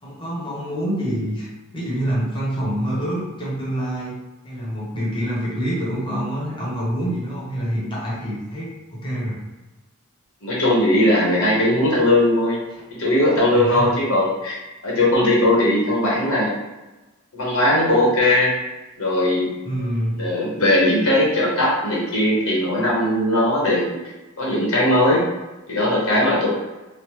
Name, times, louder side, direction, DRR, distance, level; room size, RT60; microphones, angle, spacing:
voice 1, 0.0-4.1 4.4-9.4 13.5-14.0 19.6-20.3, equal, 25° left, -6 dB, 0.8 m, -26 dB
voice 2, 10.4-12.6 12.9-14.6 14.8-16.5 17.3-18.5 19.0-19.5 20.2-24.0 24.4-25.3 25.7-26.5, left 1 dB, 75° left, -5 dB, 1.0 m, -19 dB
3.1 x 2.0 x 3.0 m, 1.1 s
head